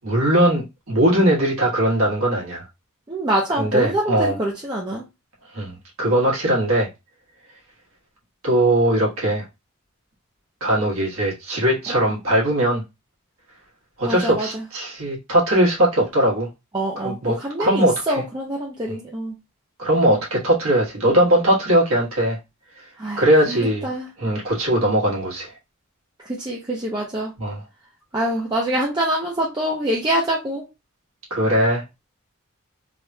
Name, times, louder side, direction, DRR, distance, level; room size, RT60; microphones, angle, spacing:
voice 1, 0.0-2.6 3.6-4.3 5.5-6.9 8.4-9.4 10.6-12.8 14.0-16.5 17.0-17.9 18.9-19.0 19.8-22.4 23.2-23.9 24.2-25.5 27.4-27.6 31.3-31.8, right 1 dB, 80° right, 1.4 m, -20 dB
voice 2, 3.1-5.0 11.9-12.1 14.0-14.6 16.7-19.3 23.0-24.1 26.2-27.3 28.1-30.7, right 1 dB, 20° right, 0.5 m, -25 dB
3.4 x 2.3 x 2.7 m
head